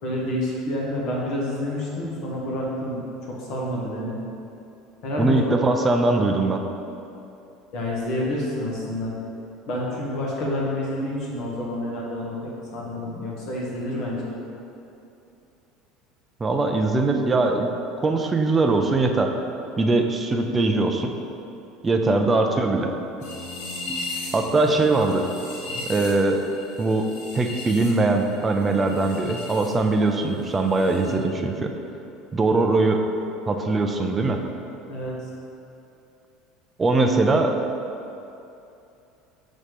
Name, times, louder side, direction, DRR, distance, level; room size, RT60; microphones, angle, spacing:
voice 1, 0.0-3.0 3.3-4.2 5.0-5.6 7.7-9.1 9.7-12.4 12.7-14.3 25.7-25.8 34.9-35.1, left 1 dB, 45° left, -4 dB, 1.5 m, -28 dB
voice 2, 5.2-6.6 16.4-17.7 18.0-19.3 19.8-21.1 21.8-22.9 24.3-25.3 25.9-26.4 26.8-31.7 32.3-33.0 33.5-34.4 36.8-37.6, right 3 dB, 15° right, 3 dB, 0.4 m, -21 dB
sound 1, 23.2-29.7 30.0-31.1, left 2 dB, 70° left, 1.5 m, -37 dB
6.3 x 4.2 x 5.1 m, 2.8 s
cardioid pair, 170°, 0 cm